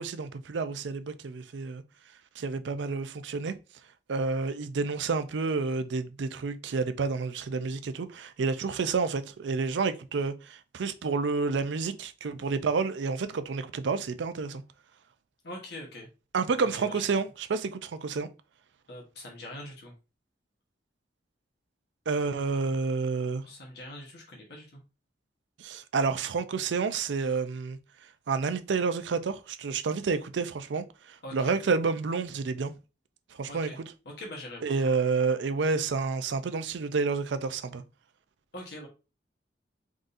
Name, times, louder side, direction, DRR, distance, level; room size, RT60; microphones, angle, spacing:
voice 1, 0.0-1.8 2.4-3.5 4.1-14.6 16.3-18.3 22.1-23.4 25.6-27.8 28.3-32.7 33.3-33.8 34.6-37.8, right 4 dB, 80° right, 0.4 m, -29 dB
voice 2, 15.4-16.1 16.6-17.1 18.9-19.9 23.4-24.8 31.2-31.5 33.5-33.8 34.0-34.7 38.5-38.9, left 1 dB, 65° left, 1.2 m, -43 dB
4.0 x 3.6 x 2.6 m
head